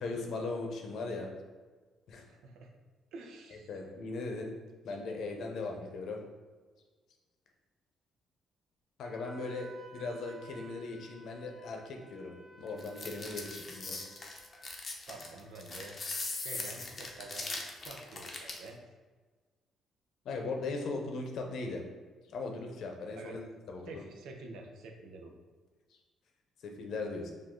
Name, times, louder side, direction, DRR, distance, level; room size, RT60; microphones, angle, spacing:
voice 1, 0.0-1.3 2.1-2.2 3.7-4.5 4.8-6.2 9.0-9.7 9.9-14.1 20.2-21.8 22.3-23.4 23.7-24.0 26.6-27.3, left 3 dB, 65° left, 2 dB, 0.7 m, -38 dB
voice 2, 2.3-2.7 3.1-3.7 5.5-5.8 15.0-16.0 16.4-18.8 23.2-23.4 23.9-25.3, right 3 dB, 80° right, 3 dB, 0.6 m, -48 dB
Wind instrument woodwind instrument, 9.0-14.8, right 2 dB, 20° right, 0.5 m, -55 dB
sound 1, 12.8-18.7, left 3 dB, 30° left, 0.7 m, -40 dB
4.9 x 2.6 x 3.7 m, 1.4 s
cardioid pair, 135°, 0 cm